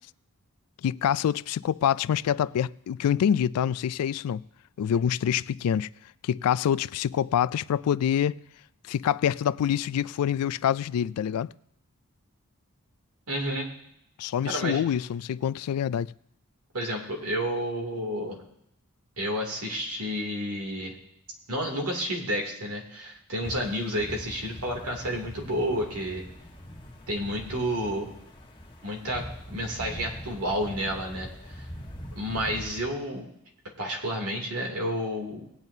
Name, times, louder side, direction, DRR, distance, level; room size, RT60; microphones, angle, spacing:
voice 1, 0.8-4.4 4.8-5.9 6.2-8.4 8.9-11.5 14.2-16.1, left 9 dB, 85° left, 0.3 m, -26 dB
voice 2, 13.3-13.7 14.4-14.8 16.7-18.4 19.2-20.9 21.5-26.2 27.1-28.1 28.8-31.6 32.2-33.3 33.8-35.5, equal, 90° right, 2.6 m, -30 dB
sound 1, 23.4-32.8, equal, 20° left, 1.3 m, -42 dB
19.5 x 9.0 x 2.7 m
head